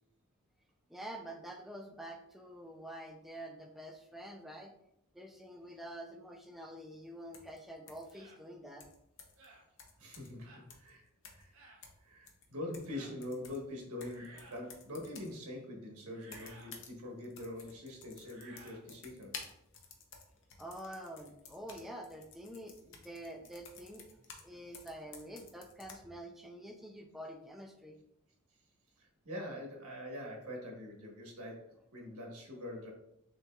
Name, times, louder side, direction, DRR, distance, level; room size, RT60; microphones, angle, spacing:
voice 1, 0.9-4.7 5.1-8.9 20.6-28.0, right 1 dB, ahead, 2 dB, 0.3 m, -47 dB
sound 1, 7.3-7.6 7.9-8.1 8.8-9.4 9.8-10.4 10.7-10.9 11.2-11.5 11.8-13.0 13.2-15.4 16.2-17.0 17.2-24.5 24.7-26.0, left 5 dB, 55° left, 0.6 m, -53 dB
sound 2, 8.1-8.4 9.4-9.7 10.4-10.7 11.5-11.8 12.8-13.2 14.0-14.7 16.1-16.8 18.2-18.9, right 2 dB, 60° right, 0.7 m, -56 dB
voice 2, 10.0-11.0 11.3-11.5 12.0-19.4 29.0-32.9, left 1 dB, 75° right, -1 dB, 1.2 m, -44 dB
6.1 x 2.9 x 2.3 m, 0.78 s
head